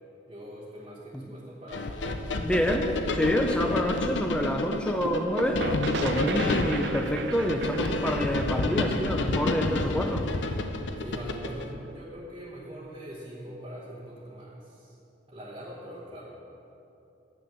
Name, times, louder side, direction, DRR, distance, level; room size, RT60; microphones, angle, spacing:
voice 1, 0.3-2.2 11.0-15.0 15.3-16.4, equal, 25° right, -6 dB, 1.1 m, -42 dB
sound 1, 1.7-11.7, left 2 dB, 75° left, 0.6 m, -30 dB
voice 2, 2.4-5.7 6.0-10.3, equal, 5° left, 4 dB, 0.5 m, -27 dB
sound 2, 4.7-10.3, right 3 dB, 65° right, 0.5 m, -35 dB
8.8 x 6.2 x 7.1 m, 2.9 s
head